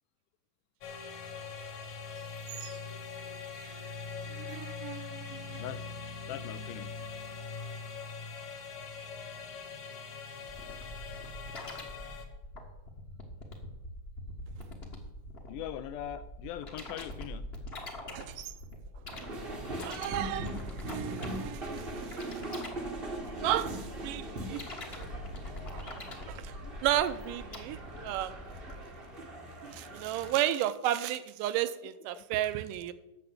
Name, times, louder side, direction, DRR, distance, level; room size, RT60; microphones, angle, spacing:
sound 1, 0.8-12.3, left 5 dB, 65° left, 2.4 m, -42 dB
voice 1, 4.2-5.6 18.1-18.5 19.8-22.4 23.4-24.6 24.9-25.0 25.7-25.8 26.3-26.5 26.8-28.5 29.7-32.9, right 12 dB, 85° right, 13 dB, 2.2 m, -34 dB
voice 2, 6.3-6.9 15.5-17.5 25.6-25.7 26.6-26.7 29.9-30.0 32.1-32.2, left 11 dB, 80° left, 12 dB, 2.0 m, -41 dB
sound 2, 10.5-28.8, left 1 dB, 45° left, 0.7 m, -44 dB
sound 3, 19.1-30.3, right 1 dB, 65° right, 0.5 m, -41 dB
11.0 x 6.9 x 7.9 m, 0.94 s
omnidirectional pair, 3.8 m